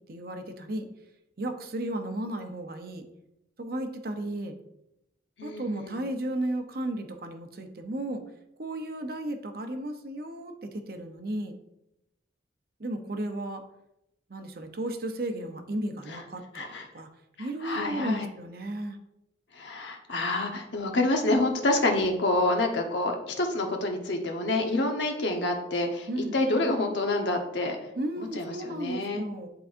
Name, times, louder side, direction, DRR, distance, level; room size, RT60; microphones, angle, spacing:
voice 1, 0.1-0.9 1.4-3.0 3.6-4.6 5.4-8.2 8.6-11.6 12.8-13.7 14.3-17.1 17.4-19.0 26.1-26.4 28.0-29.5, right 1 dB, 55° right, 6 dB, 0.7 m, -34 dB
voice 2, 5.4-6.0 16.1-16.2 16.5-16.8 17.6-18.3 19.5-27.8 28.2-29.2, left 2 dB, 80° left, 3 dB, 1.1 m, -28 dB
10.5 x 4.0 x 2.6 m, 0.85 s
head